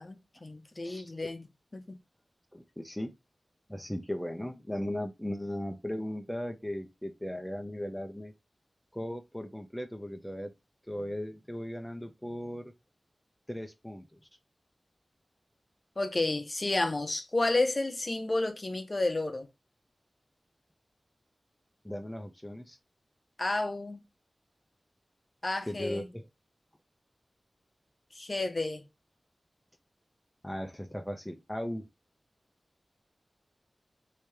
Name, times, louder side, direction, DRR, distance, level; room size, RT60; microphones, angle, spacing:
voice 1, 0.0-1.4 1.7-2.0 16.0-19.5 23.4-24.0 25.4-26.1 28.1-28.8, left 2 dB, 50° left, 0.7 m, -31 dB
voice 2, 2.5-3.1 3.7-8.3 8.9-10.5 10.9-12.7 13.5-14.0 21.8-22.8 25.7-26.2 30.4-31.9, left 1 dB, 10° left, 0.6 m, -37 dB
3.1 x 2.8 x 3.2 m
cardioid pair, 40°, 0 cm